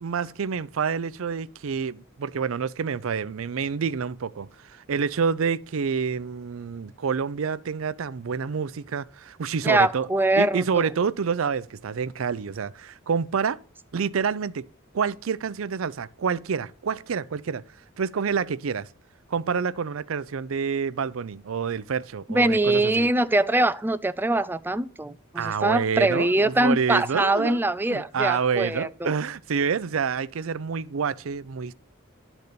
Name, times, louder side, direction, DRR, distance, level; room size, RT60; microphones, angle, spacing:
voice 1, 0.0-10.1 10.4-13.6 13.9-14.7 14.9-17.6 18.0-18.9 19.3-23.1 25.4-27.6 27.9-31.7, right 6 dB, 75° right, 0.5 m, -28 dB
voice 2, 9.6-10.8 22.3-29.2, right 2 dB, 10° right, 0.4 m, -23 dB
12.0 x 4.0 x 6.8 m
head